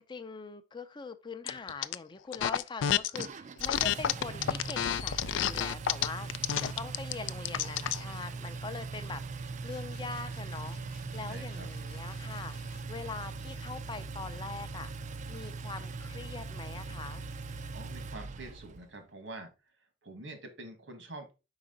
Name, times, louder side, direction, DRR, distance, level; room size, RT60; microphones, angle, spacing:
voice 1, 0.0-14.9 15.3-17.2, left 4 dB, 25° left, 0.5 m, -43 dB
sound 1, 1.5-1.9 2.3-3.3 3.6-8.0, left 10 dB, 90° left, 0.3 m, -30 dB
Engine, 3.2-18.9, right 4 dB, 40° right, 0.4 m, -40 dB
sound 2, 9.7-13.1, left 3 dB, 55° left, 0.7 m, -55 dB
voice 2, 11.3-11.7 17.7-19.5 20.0-21.3, right 2 dB, 80° right, 1.7 m, -45 dB
5.1 x 4.9 x 3.8 m
head